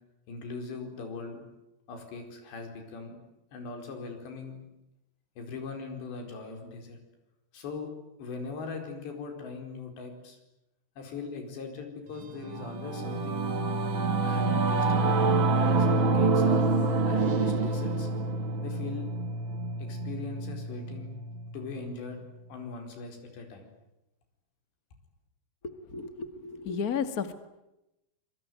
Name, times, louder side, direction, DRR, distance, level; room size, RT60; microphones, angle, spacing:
voice 1, 0.3-1.4 1.9-3.2 3.5-4.6 5.4-7.0 7.5-7.9 8.2-10.4 11.0-13.4 14.2-15.2 15.8-16.6 17.1-18.1 18.6-19.1 19.8-21.1 21.5-22.2 22.5-23.7, left 4 dB, 90° left, 5 dB, 6.7 m, -40 dB
Singing / Musical instrument, 12.2-21.9, right 3 dB, 40° right, 2.1 m, -27 dB
voice 2, 25.6-27.3, left 6 dB, 45° left, 10 dB, 1.2 m, -33 dB
26.5 x 23.0 x 9.3 m, 0.92 s
omnidirectional pair, 4.8 m